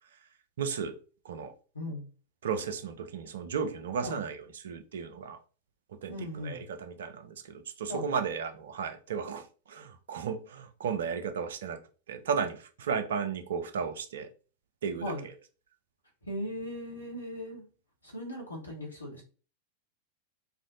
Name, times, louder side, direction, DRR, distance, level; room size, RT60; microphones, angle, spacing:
voice 1, 0.6-1.0 1.2-1.5 2.4-5.4 5.9-14.3 14.8-15.1, right 6 dB, 60° right, 0.3 m, -34 dB
voice 2, 1.7-2.1 4.0-4.2 6.1-6.7 7.9-8.1 15.0-15.3 16.2-17.7 18.0-19.2, left 1 dB, 80° left, 0.9 m, -38 dB
2.4 x 2.0 x 2.6 m
figure-of-eight pair, 90°, 0 cm